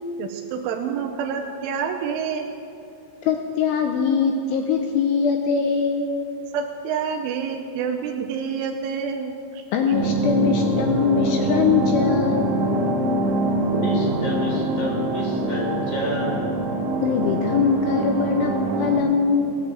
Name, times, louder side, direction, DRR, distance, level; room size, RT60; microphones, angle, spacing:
voice 1, 0.2-2.5 6.5-9.6, right 6 dB, 80° right, 2 dB, 3.2 m, -28 dB
voice 2, 3.2-6.1 9.7-12.5 17.0-18.5 18.8-19.6, left 6 dB, 80° left, 3 dB, 2.5 m, -22 dB
sound 1, 9.9-19.0, right 1 dB, 60° right, 3.5 m, -24 dB
voice 3, 13.7-16.4, equal, 30° left, -5 dB, 2.5 m, -29 dB
17.0 x 8.9 x 7.6 m, 2.7 s
omnidirectional pair, 5.7 m